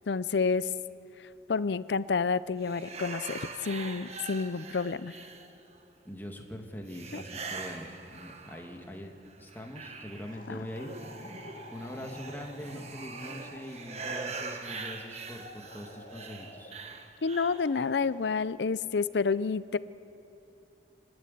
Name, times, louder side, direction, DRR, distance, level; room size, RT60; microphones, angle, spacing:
voice 1, 0.1-0.7 1.5-5.1 7.1-7.2 10.5-10.7 17.2-19.8, left 5 dB, 75° left, 17 dB, 0.5 m, -29 dB
sound 1, 2.6-5.8 6.9-8.9 9.3-17.7, right 4 dB, 35° right, 1.3 m, -42 dB
voice 2, 6.0-10.9 11.7-16.7, equal, 10° left, 2 dB, 1.7 m, -43 dB
sound 2, 10.3-14.2 15.6-16.8 17.3-18.3, left 2 dB, 50° left, 2.9 m, -50 dB
26.0 x 12.0 x 9.7 m, 2.7 s
head